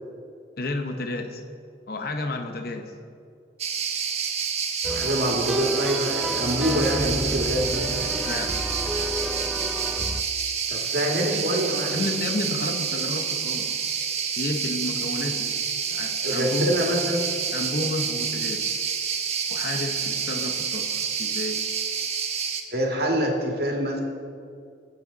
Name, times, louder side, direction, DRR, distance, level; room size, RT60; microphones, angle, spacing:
voice 1, 0.6-1.4 1.9-3.0 8.0-8.6 11.9-13.8 14.4-15.6 15.9-16.8 17.5-18.8 19.5-21.7, left 2 dB, 55° left, 5 dB, 0.9 m, -31 dB
sound 1, 3.6-22.6, right 6 dB, 35° right, 1.0 m, -28 dB
sound 2, 4.8-10.2, right 1 dB, ahead, 0.4 m, -31 dB
voice 2, 4.9-8.1 10.7-12.1 16.2-17.2 22.7-24.0, equal, 55° right, 0 dB, 2.2 m, -26 dB
22.0 x 8.7 x 4.0 m, 2.4 s
head